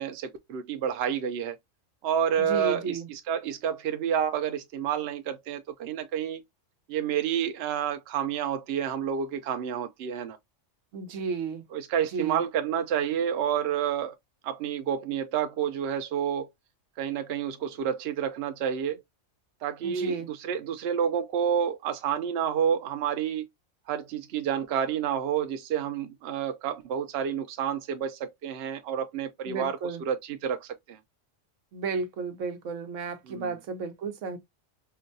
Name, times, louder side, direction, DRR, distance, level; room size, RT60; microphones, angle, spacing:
voice 1, 0.0-1.6 2.0-6.4 6.9-10.4 11.7-14.2 14.4-16.5 17.0-19.0 19.6-23.4 23.9-31.0 33.2-33.6, right 8 dB, 65° right, 0.8 m, -29 dB
voice 2, 2.4-3.1 10.9-11.6 12.1-12.4 19.8-20.3 29.5-30.0 31.7-34.4, right 5 dB, 85° right, 1.1 m, -33 dB
4.6 x 2.2 x 2.6 m
omnidirectional pair, 1.3 m